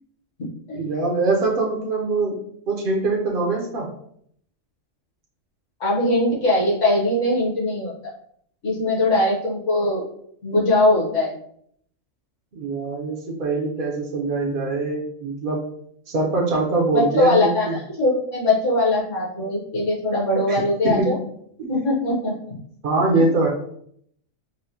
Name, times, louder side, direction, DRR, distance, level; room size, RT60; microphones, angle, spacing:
voice 1, 0.7-2.4 2.7-3.9 12.5-15.6 16.1-17.7 20.5-21.2 21.6-21.7 22.8-23.5, right 3 dB, 55° right, -1 dB, 0.6 m, -23 dB
voice 2, 5.8-7.9 8.6-10.1 10.4-11.3 16.9-21.1 21.7-22.3, left 1 dB, 65° left, -4 dB, 1.3 m, -21 dB
4.1 x 2.0 x 2.7 m, 0.67 s
omnidirectional pair, 1.4 m